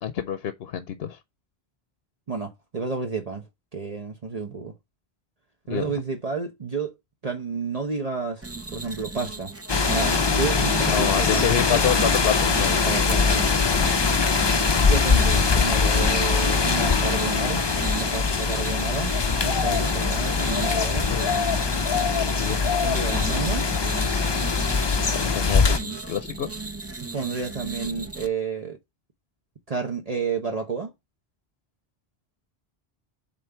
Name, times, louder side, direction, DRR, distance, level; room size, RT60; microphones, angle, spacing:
voice 1, 0.0-1.2 5.7-5.9 10.9-12.9 21.1-21.3 22.1-22.6 25.1-26.5, left 9 dB, 70° left, 0.9 m, -28 dB
voice 2, 2.3-3.4 3.7-4.7 5.7-6.9 7.2-8.5 8.7-9.5 9.9-11.4 11.7-11.8 12.8-13.5 14.8-17.6 17.9-19.1 19.4-21.1 22.3-22.4 22.8-23.7 27.1-28.8 29.7-30.9, right 5 dB, 40° right, 0.9 m, -31 dB
sound 1, 8.4-28.3, right 3 dB, 15° right, 0.6 m, -36 dB
sound 2, 9.7-25.8, left 4 dB, 35° left, 0.5 m, -22 dB
7.4 x 3.9 x 4.4 m
omnidirectional pair, 1.1 m